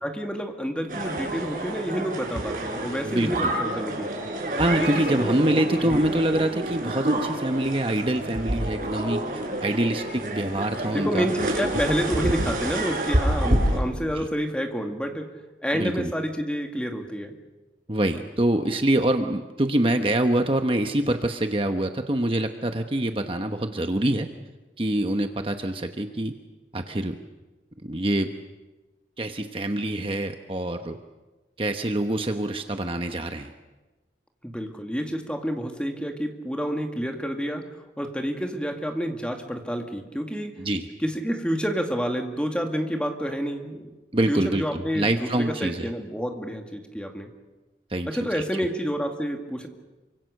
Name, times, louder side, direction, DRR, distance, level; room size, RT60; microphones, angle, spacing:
voice 1, 0.0-4.3 4.8-6.1 10.8-15.3 15.6-17.3 34.4-40.5 41.0-43.8 44.3-47.3 48.1-49.7, equal, 5° left, 3 dB, 2.3 m, -29 dB
sound 1, 0.9-13.8, right 1 dB, 50° right, 6.5 m, -28 dB
voice 2, 3.1-3.5 4.6-9.3 9.6-11.3 14.2-14.3 15.7-16.1 17.9-24.3 24.8-26.3 26.7-27.2 27.8-28.3 29.2-31.0 31.6-33.5 40.6-40.9 44.1-45.9 47.9-48.6, right 1 dB, 30° right, 6 dB, 1.1 m, -25 dB
28.0 x 25.0 x 6.6 m, 1.2 s
head